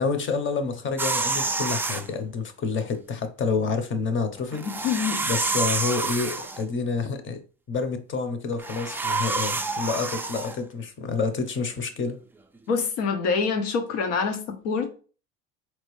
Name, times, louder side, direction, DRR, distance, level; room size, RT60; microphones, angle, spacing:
voice 1, 0.0-4.7 5.3-7.4 7.7-12.2, left 4 dB, 35° left, 0.8 m, -28 dB
sound 1, 1.0-2.1 4.5-6.6 8.5-10.6, right 3 dB, 5° right, 0.3 m, -28 dB
voice 2, 4.6-5.3 12.7-15.0, left 5 dB, 80° left, 1.0 m, -26 dB
4.2 x 3.0 x 3.2 m
supercardioid pair, 90°, 36 cm